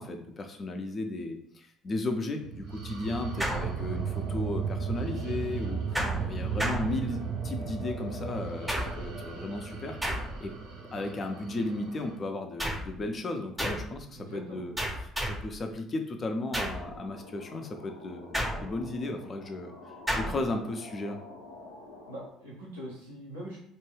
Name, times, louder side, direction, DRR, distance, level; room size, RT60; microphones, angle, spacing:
voice 1, 0.0-10.0 10.4-10.6 10.9-19.7 20.1-21.2, left 2 dB, 40° left, 5 dB, 0.5 m, -35 dB
sound 1, 2.4-12.2, right 6 dB, 70° right, 0.6 m, -35 dB
sound 2, 3.4-4.3 6.0-7.5 8.7-9.2 10.0-10.6 12.6-13.0 13.6-14.0 14.8-15.6 16.5-16.9 18.3-19.0 20.1-20.5, equal, 10° right, 0.6 m, -33 dB
voice 2, 14.1-14.6 22.1-23.6, equal, 85° right, -5 dB, 1.0 m, -42 dB
sound 3, 16.5-22.3, left 2 dB, 90° left, 0.5 m, -48 dB
2.5 x 2.2 x 3.2 m, 0.68 s
figure-of-eight pair, 55°, 0 cm